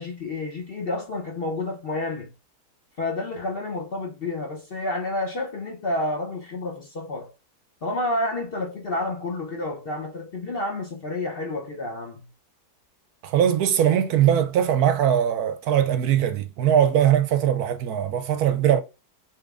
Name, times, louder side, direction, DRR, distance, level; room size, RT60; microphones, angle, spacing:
voice 1, 0.0-2.3 3.0-7.3 7.8-12.3, left 2 dB, 45° left, 0.8 m, -30 dB
voice 2, 13.2-18.8, right 9 dB, 70° right, 1.0 m, -21 dB
6.5 x 3.2 x 2.4 m
omnidirectional pair, 1.8 m